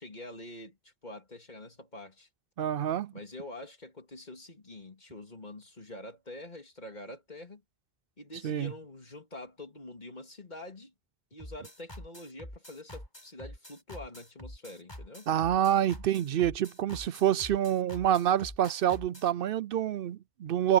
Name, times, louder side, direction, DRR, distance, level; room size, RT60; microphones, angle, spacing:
voice 1, 0.0-2.3 3.1-7.6 8.2-10.9 11.3-15.3, left 1 dB, 45° left, 2.8 m, -46 dB
voice 2, 2.6-3.1 8.4-8.7 15.3-20.8, right 10 dB, 65° right, 0.7 m, -27 dB
sound 1, 11.4-19.3, equal, 25° left, 5.2 m, -46 dB
omnidirectional pair, 1.1 m